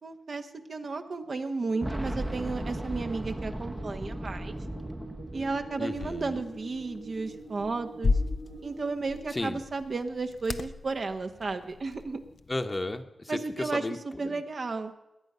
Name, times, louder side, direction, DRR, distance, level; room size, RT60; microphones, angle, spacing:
voice 1, 0.0-4.5 5.3-8.1 8.6-12.2 13.3-13.8 14.2-14.9, right 3 dB, 60° right, 6 dB, 1.2 m, -33 dB
sound 1, 1.7-9.2, right 2 dB, 90° right, 4.7 m, -46 dB
Boom, 1.8-6.6 6.8-6.9 8.0-8.1, right 1 dB, 15° right, 0.8 m, -36 dB
voice 2, 5.4-6.5 9.3-9.6 12.5-14.4, left 2 dB, 30° left, 7 dB, 1.1 m, -35 dB
sound 2, 5.9-13.0, left 3 dB, 65° left, 0.6 m, -35 dB
18.0 x 10.0 x 5.6 m, 0.96 s
cardioid pair, 50°, 0 cm